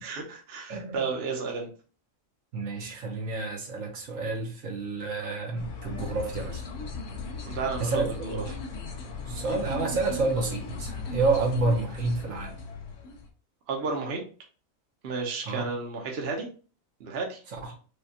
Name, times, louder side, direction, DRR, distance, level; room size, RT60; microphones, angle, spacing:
voice 1, 0.0-1.7 7.5-8.4 13.7-14.2 15.0-16.5 17.0-17.4, right 4 dB, 55° right, 0 dB, 0.9 m, -32 dB
voice 2, 2.5-6.6 7.8-8.1 9.3-12.6 15.5-15.7 17.5-17.7, right 3 dB, 70° right, 0 dB, 1.3 m, -29 dB
sound 1, 5.6-13.3, left 4 dB, 65° left, 1.0 m, -37 dB
4.9 x 2.2 x 2.7 m, 0.38 s
omnidirectional pair, 1.4 m